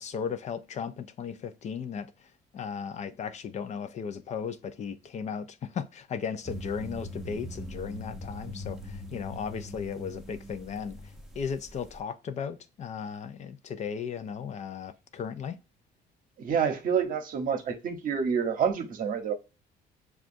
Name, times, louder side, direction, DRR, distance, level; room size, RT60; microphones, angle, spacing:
voice 1, 0.0-2.1 2.5-11.0 11.4-15.6, left 6 dB, 45° left, 0.4 m, -36 dB
sound 1, 6.5-12.0, equal, ahead, 0.7 m, -41 dB
voice 2, 16.4-19.3, right 7 dB, 55° right, 0.8 m, -28 dB
6.1 x 2.4 x 2.5 m
cardioid pair, 110°, 17 cm